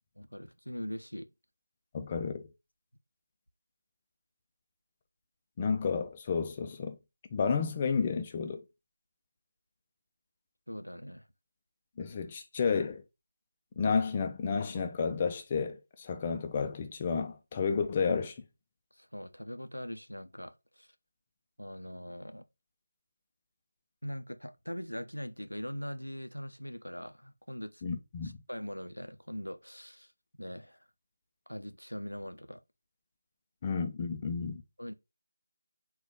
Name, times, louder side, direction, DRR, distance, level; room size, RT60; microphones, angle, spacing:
voice 1, 0.2-1.3 10.7-11.3 18.9-20.9 21.6-22.4 24.0-27.8 28.2-30.8 31.5-32.6 34.8-34.9, equal, 85° left, 0.5 m, -41 dB
voice 2, 1.9-2.5 5.6-7.0 7.3-8.6 12.0-13.0 13.8-18.4 27.8-28.4 33.6-34.6, left 5 dB, 20° left, 0.4 m, -31 dB
3.9 x 2.3 x 3.9 m
figure-of-eight pair, 160°, 0 cm